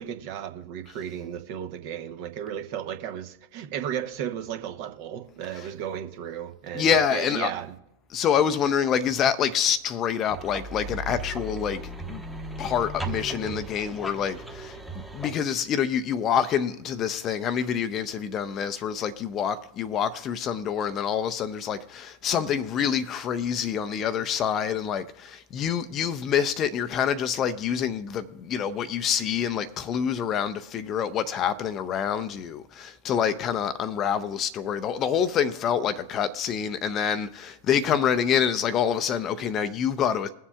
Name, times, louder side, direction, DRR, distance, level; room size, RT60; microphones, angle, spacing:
voice 1, 0.0-7.8, right 9 dB, 45° right, 0.9 m, -34 dB
voice 2, 6.7-7.5 8.1-11.8 12.1-12.2 12.6-14.8 15.1-40.3, left 8 dB, 30° left, 0.5 m, -26 dB
sound 1, 10.3-15.3, right 2 dB, ahead, 1.0 m, -36 dB
22.0 x 7.3 x 2.4 m
figure-of-eight pair, 90°, 0 cm